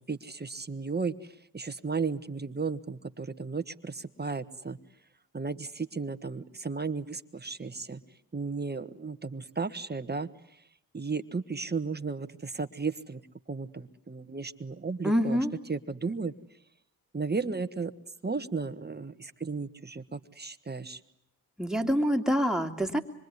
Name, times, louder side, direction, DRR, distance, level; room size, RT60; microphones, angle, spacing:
voice 1, 0.0-4.8 5.3-8.0 8.3-10.6 10.9-13.2 13.5-15.4 15.7-16.3 17.1-17.9 18.2-21.0, right 4 dB, 25° right, 11 dB, 1.5 m, -34 dB
voice 2, 15.0-15.5 21.6-23.0, equal, ahead, 4 dB, 2.9 m, -26 dB
26.0 x 23.5 x 9.7 m, 0.76 s
cardioid pair, 65°, 41 cm